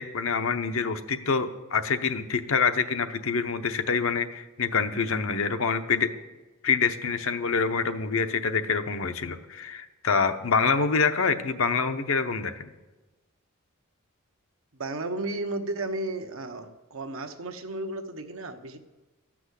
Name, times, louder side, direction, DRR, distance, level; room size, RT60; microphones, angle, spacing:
voice 1, 0.0-6.1 6.6-12.5, left 5 dB, 70° left, 8 dB, 0.8 m, -26 dB
voice 2, 14.7-18.8, right 2 dB, 70° right, 6 dB, 1.0 m, -33 dB
14.0 x 6.1 x 8.1 m, 1.1 s
head